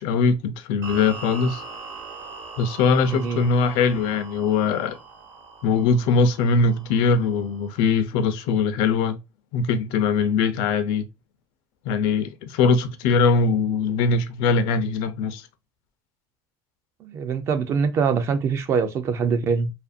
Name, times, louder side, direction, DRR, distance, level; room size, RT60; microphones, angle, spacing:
voice 1, 0.0-1.6 2.6-5.0 5.6-9.2 9.5-11.1 11.8-15.5, left 4 dB, 80° left, 0.4 m, -21 dB
sound 1, 0.8-8.0, right 4 dB, 50° right, 1.0 m, -41 dB
voice 2, 3.1-3.4 17.0-19.7, right 5 dB, 35° right, 0.4 m, -24 dB
2.8 x 2.5 x 2.4 m
cardioid pair, 170°, 8 cm